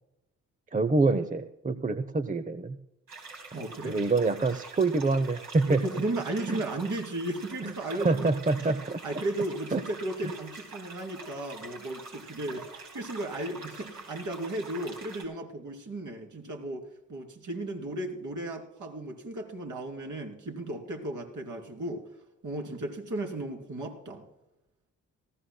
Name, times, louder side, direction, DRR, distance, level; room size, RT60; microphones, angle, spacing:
voice 1, 0.7-2.8 3.6-5.8 6.5-6.6 7.6-9.0 9.7-9.8, right 3 dB, 20° right, 11 dB, 0.8 m, -26 dB
sound 1, 3.1-15.2, right 3 dB, 70° right, 4.1 m, -46 dB
voice 2, 3.5-4.0 5.7-8.3 9.0-16.8 17.1-22.0 22.4-24.2, right 1 dB, 55° right, 1 dB, 3.6 m, -35 dB
19.0 x 15.5 x 2.3 m, 0.93 s
hypercardioid pair, 45°, 36 cm